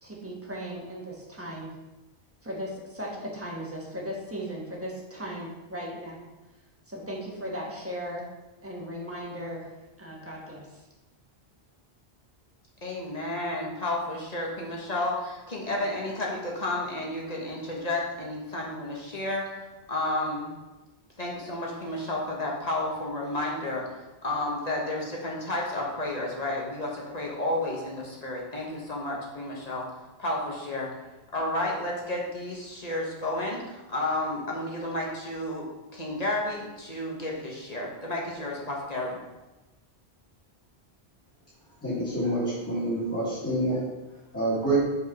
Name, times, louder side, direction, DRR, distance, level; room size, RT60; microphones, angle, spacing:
voice 1, 0.0-1.7 2.4-6.3 6.9-8.3 8.6-9.7 10.0-10.8, equal, 15° right, -3 dB, 1.3 m, -37 dB
voice 2, 12.8-19.4 19.9-20.5 21.2-23.8 24.2-29.9 30.2-30.9 31.3-35.6 35.9-39.2, left 1 dB, 40° left, -2 dB, 1.3 m, -31 dB
voice 3, 41.8-43.8 44.3-44.8, right 1 dB, 15° left, -11 dB, 1.9 m, -27 dB
5.5 x 4.5 x 4.6 m, 1.1 s
omnidirectional pair, 1.1 m